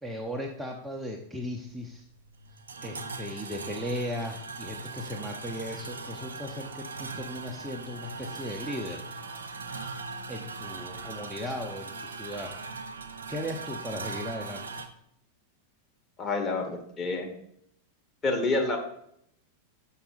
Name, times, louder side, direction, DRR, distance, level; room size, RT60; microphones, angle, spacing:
voice 1, 0.0-2.0 2.8-9.0 10.3-12.6 13.3-14.8, left 1 dB, 5° right, 0 dB, 0.7 m, -37 dB
sound 1, 1.7-14.9, right 4 dB, 70° right, 0.6 m, -40 dB
voice 2, 16.2-17.3 18.2-18.8, left 3 dB, 20° left, 2 dB, 1.3 m, -28 dB
6.3 x 5.6 x 4.1 m, 0.72 s
figure-of-eight pair, 90°, 0 cm